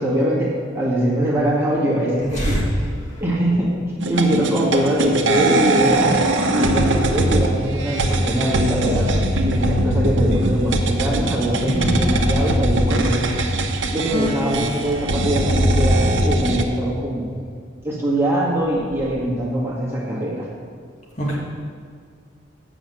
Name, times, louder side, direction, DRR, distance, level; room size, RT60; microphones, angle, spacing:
voice 1, 0.0-2.9 3.2-3.8 4.1-6.2 6.5-13.3 13.9-17.3 17.8-20.5, right 1 dB, 15° right, -5 dB, 1.6 m, -22 dB
voice 2, 2.4-2.6 11.6-11.9 21.2-21.4, equal, 40° left, -4 dB, 2.0 m, -23 dB
sound 1, 4.0-16.6, right 1 dB, 75° right, 0.9 m, -20 dB
7.8 x 6.2 x 7.7 m, 2.1 s
head